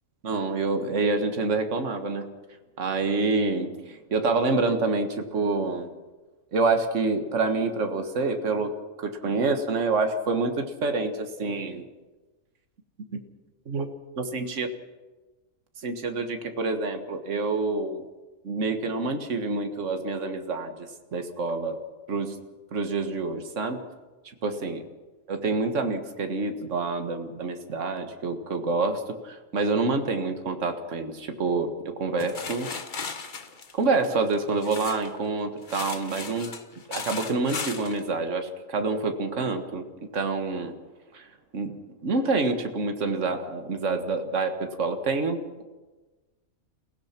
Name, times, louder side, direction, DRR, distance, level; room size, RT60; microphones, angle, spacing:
voice 1, 0.2-2.3 2.8-5.9 6.5-8.7 9.0-11.9 13.1-13.2 13.7-13.9 14.2-14.7 15.8-18.0 18.4-21.8 22.1-22.4 22.7-23.8 24.4-24.8 25.3-32.7 33.7-36.6 36.9-39.8 40.1-40.7 41.1-41.8 42.0-45.6, right 3 dB, 55° right, 6 dB, 1.9 m, -27 dB
sound 1, 32.2-35.2 35.6-38.0, left 4 dB, 35° left, 1.2 m, -36 dB
29.0 x 16.5 x 5.9 m, 1.2 s
omnidirectional pair, 1.5 m